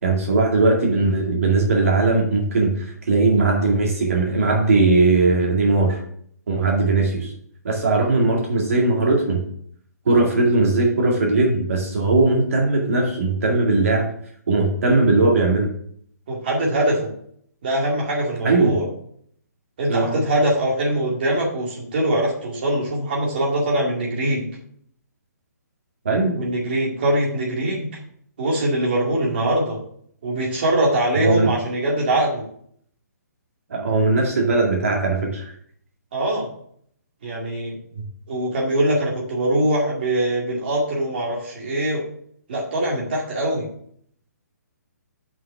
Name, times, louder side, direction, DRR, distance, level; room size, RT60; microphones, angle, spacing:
voice 1, 0.0-6.0 6.5-7.3 7.6-9.4 10.1-14.1 14.5-15.7 18.4-18.8 19.9-20.2 26.0-26.4 31.2-31.5 33.7-35.5, right 3 dB, 50° right, 0 dB, 2.1 m, -19 dB
voice 2, 16.3-17.1 17.6-18.8 19.8-24.5 26.4-27.9 28.4-29.8 30.2-32.4 36.1-36.5 37.2-37.8 38.3-42.0 42.5-43.7, right 1 dB, 35° right, -4 dB, 2.1 m, -22 dB
5.9 x 5.6 x 6.8 m, 0.64 s
hypercardioid pair, 175°, 9 cm